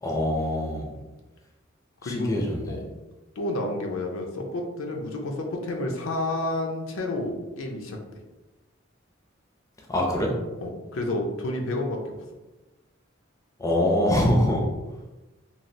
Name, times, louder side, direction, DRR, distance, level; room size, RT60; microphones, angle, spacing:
voice 1, 0.0-0.9 2.0-2.5 9.9-10.3 13.6-14.6, left 1 dB, 15° left, -1 dB, 0.4 m, -23 dB
voice 2, 2.0-2.3 2.7-2.8 3.4-8.0 10.6-12.2, left 1 dB, 80° left, 2 dB, 0.5 m, -30 dB
3.1 x 2.4 x 2.6 m, 1.1 s
head